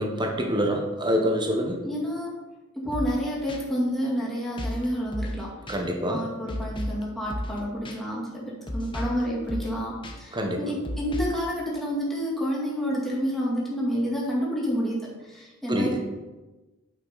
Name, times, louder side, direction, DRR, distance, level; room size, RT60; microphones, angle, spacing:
voice 1, 0.0-1.8 5.7-6.2 10.3-10.6 15.7-16.0, equal, 20° right, 2 dB, 1.0 m, -26 dB
voice 2, 1.8-2.4 2.8-15.0 15.3-16.0, equal, ahead, -6 dB, 2.1 m, -29 dB
sound 1, 2.9-3.2 3.5-3.6 4.6-4.8 5.1-5.4 5.7-5.8 6.5-7.0 7.3-7.6 7.8-8.0 8.7-9.2 9.5-9.7 10.0-10.1 10.8-11.4, left 1 dB, 25° left, 0.9 m, -32 dB
8.7 x 5.6 x 4.1 m, 1.1 s
head